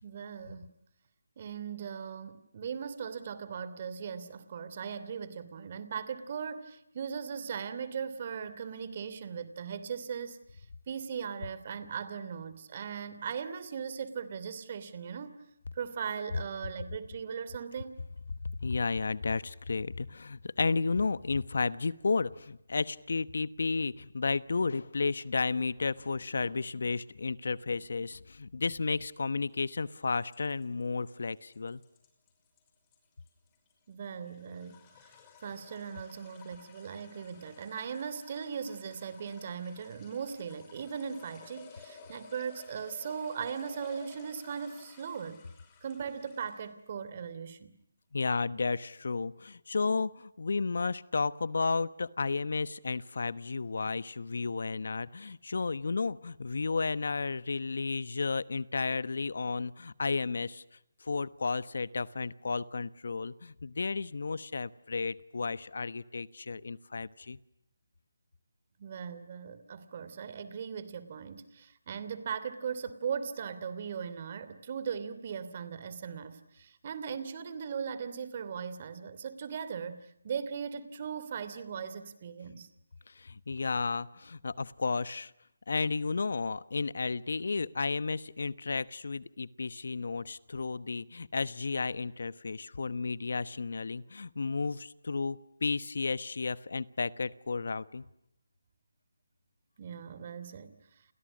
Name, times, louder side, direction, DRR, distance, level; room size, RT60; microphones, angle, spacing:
voice 1, 0.0-0.8 1.4-10.6 10.9-15.4 15.7-18.0 33.9-35.1 35.4-45.4 45.8-47.7 68.8-82.7 99.8-100.8, right 7 dB, 40° right, 14 dB, 2.9 m, -39 dB
voice 2, 18.6-31.8 48.1-60.6 61.0-67.4 83.1-85.3 85.7-98.0, left 4 dB, 65° left, 17 dB, 1.1 m, -33 dB
sound 1, 29.6-46.8, left 5 dB, 20° left, 5.8 m, -55 dB
30.0 x 29.5 x 6.3 m, 0.76 s
figure-of-eight pair, 160°, 0 cm